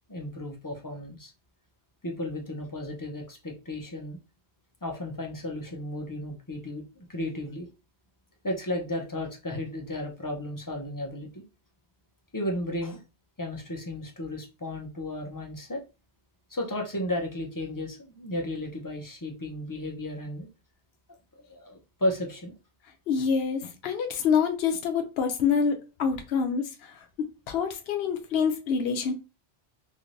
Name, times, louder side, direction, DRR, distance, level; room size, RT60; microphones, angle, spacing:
voice 1, 0.1-1.3 2.0-4.2 4.8-7.7 8.4-11.4 12.3-13.0 13.4-15.8 16.5-20.5 21.5-22.5, left 1 dB, 25° left, 0.5 m, -34 dB
voice 2, 23.1-27.0 27.5-29.1, left 6 dB, 65° left, 0.8 m, -26 dB
3.3 x 3.1 x 2.5 m
omnidirectional pair, 1.2 m